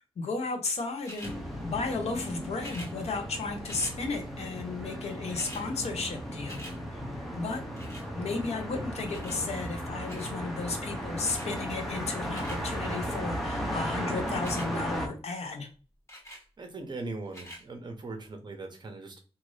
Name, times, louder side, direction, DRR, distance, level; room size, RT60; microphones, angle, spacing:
voice 1, 0.2-1.3 1.6-6.6 6.9-7.0 7.3-7.6 8.1-15.7, left 3 dB, 75° left, 4 dB, 0.7 m, -34 dB
sound 1, 1.0-1.4 2.6-2.9 3.6-4.0 4.9-5.0 5.2-5.7 6.0-6.8 7.8-8.1 9.1-9.4 10.1-10.4 11.2-11.5 12.1-12.6 14.3-14.7 16.1-16.4 17.3-17.6 18.3-18.4, equal, 25° left, 1.3 m, -45 dB
sound 2, 1.2-15.1, equal, ahead, 0.7 m, -36 dB
voice 2, 16.6-19.2, right 3 dB, 40° right, 5 dB, 0.7 m, -40 dB
2.6 x 2.5 x 3.2 m, 0.35 s
wide cardioid pair, 125°, 11 cm